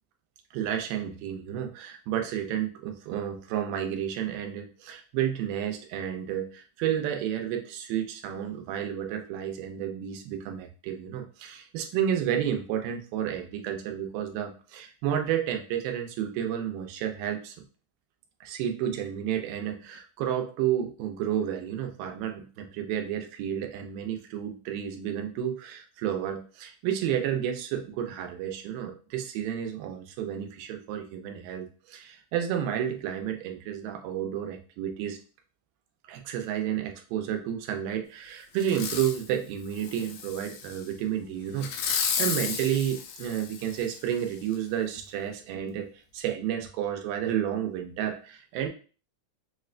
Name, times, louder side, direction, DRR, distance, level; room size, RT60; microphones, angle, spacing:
voice 1, 0.5-17.6 18.4-35.2 36.1-45.9 46.1-48.7, right 10 dB, 90° right, 4 dB, 2.3 m, -31 dB
Fireworks, 38.6-39.2 39.8-40.8 41.6-44.0 44.5-44.6, left 6 dB, 80° left, 1.6 m, -32 dB
6.1 x 2.1 x 2.4 m, 0.37 s
omnidirectional pair, 3.9 m